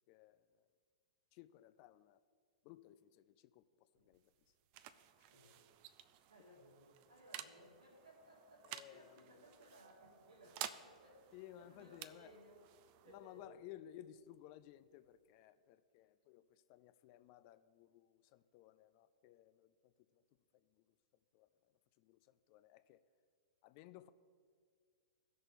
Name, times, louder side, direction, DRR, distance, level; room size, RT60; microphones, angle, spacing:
voice 1, 1.3-2.2 2.6-3.6 4.1-4.2 8.6-9.1 11.3-12.3 13.1-16.4 16.7-19.7 21.3-21.5 22.0-22.2 22.5-23.0 23.6-24.1, left 13 dB, 40° left, 13 dB, 0.3 m, -57 dB
sound 1, 4.0-15.3, right 12 dB, 40° right, 0.4 m, -54 dB
voice 2, 5.3-5.7 6.3-12.6 13.0-13.6, right 1 dB, 85° right, -4 dB, 1.7 m, -62 dB
17.5 x 6.2 x 2.6 m, 2.1 s
figure-of-eight pair, 100°, 4 cm